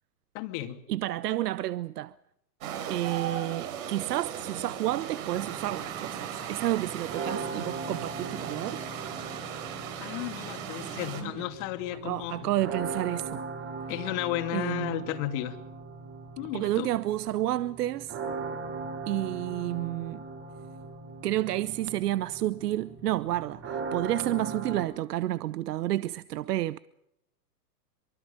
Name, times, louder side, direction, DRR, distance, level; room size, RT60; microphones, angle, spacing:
voice 1, 0.3-0.8 10.0-12.5 13.9-15.6 16.4-16.9, left 14 dB, 45° left, 2.6 m, -33 dB
voice 2, 0.9-2.1 2.9-8.8 10.8-11.5 12.0-13.4 14.5-15.0 16.5-18.2 19.1-20.2 21.2-26.8, right 14 dB, 75° right, 0.8 m, -30 dB
sound 1, 2.6-11.2, right 8 dB, 55° right, 4.8 m, -38 dB
sound 2, 5.3-24.9, right 4 dB, 30° right, 3.1 m, -40 dB
24.0 x 23.5 x 5.3 m
hypercardioid pair, 135°, 48 cm